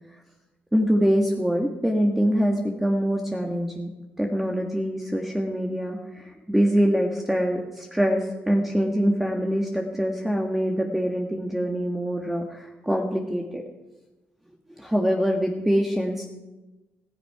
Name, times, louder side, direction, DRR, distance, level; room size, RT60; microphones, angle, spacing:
voice 1, 0.7-3.9 4.2-13.6 14.8-16.2, equal, 5° right, 1 dB, 1.6 m, -24 dB
15.5 x 15.5 x 4.9 m, 1.1 s
cardioid pair, 115°, 4 cm